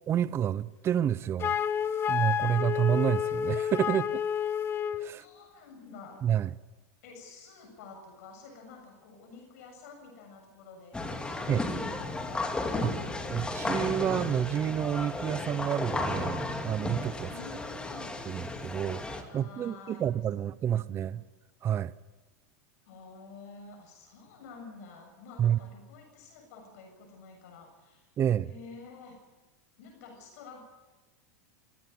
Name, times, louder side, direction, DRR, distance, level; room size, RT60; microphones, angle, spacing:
voice 1, 0.1-1.5 2.1-4.2 5.0-5.3 6.2-6.5 11.5-11.6 12.8-13.0 13.3-17.3 18.3-21.2 21.6-21.9 25.4-25.6 28.2-28.5, right 10 dB, 30° right, 0.6 m, -29 dB
Wind instrument woodwind instrument, 1.4-5.1, left 8 dB, 30° left, 1.0 m, -30 dB
voice 2, 5.1-6.3 7.0-12.4 17.3-18.1 19.3-20.1 20.4-21.1 22.9-28.1 28.5-29.2 29.8-30.6, left 4 dB, 70° left, 7.2 m, -49 dB
sound 1, 10.9-19.2, left 2 dB, 10° left, 2.6 m, -34 dB
23.5 x 16.0 x 9.4 m
supercardioid pair, 125°, 9 cm